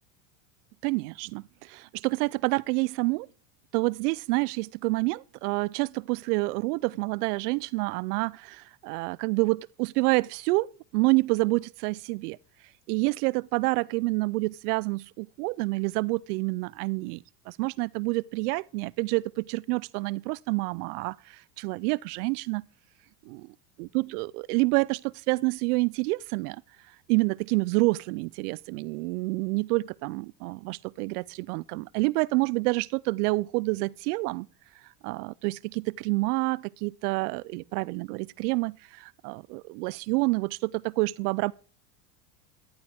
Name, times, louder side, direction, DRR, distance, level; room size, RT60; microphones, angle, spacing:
voice 1, 0.8-3.3 3.7-12.4 12.9-22.6 23.3-23.4 23.8-26.6 27.1-34.5 35.0-41.5, right 24 dB, 70° right, 0.5 m, -28 dB
12.0 x 11.5 x 3.5 m
supercardioid pair, 115°, 48 cm